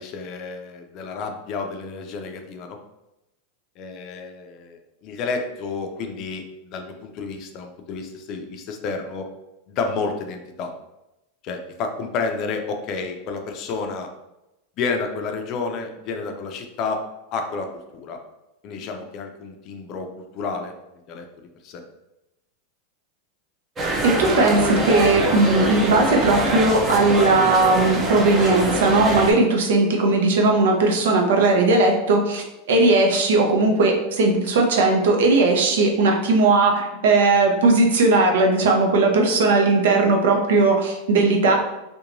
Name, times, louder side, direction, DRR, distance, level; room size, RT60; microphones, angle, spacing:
voice 1, 0.0-2.8 3.8-9.3 9.7-10.7 11.4-14.1 14.8-17.0 17.3-18.2 18.6-20.1 20.3-20.7 21.1-21.2 21.6-21.8, left 4 dB, 45° left, 4 dB, 0.4 m, -30 dB
crowd ext medium street festival music background MS, 23.8-29.3, right 2 dB, 25° right, 0.5 m, -24 dB
voice 2, 24.0-41.5, right 3 dB, 80° right, 2 dB, 0.6 m, -18 dB
2.8 x 2.2 x 2.5 m, 0.94 s
supercardioid pair, 135°, 0 cm